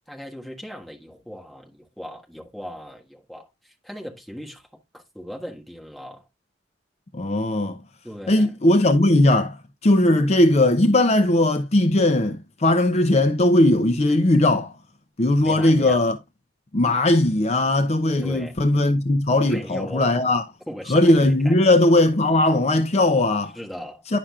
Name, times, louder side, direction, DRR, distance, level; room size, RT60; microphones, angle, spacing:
voice 1, 0.0-6.3 8.0-8.5 15.4-16.0 18.2-18.5 19.4-20.1 20.7-21.6 23.5-24.0, equal, ahead, 1.5 m, -38 dB
voice 2, 7.1-7.8 8.3-14.7 15.2-16.2 16.7-20.4 20.9-23.6 24.1-24.2, left 1 dB, 35° left, 0.6 m, -19 dB
10.0 x 6.0 x 2.4 m
head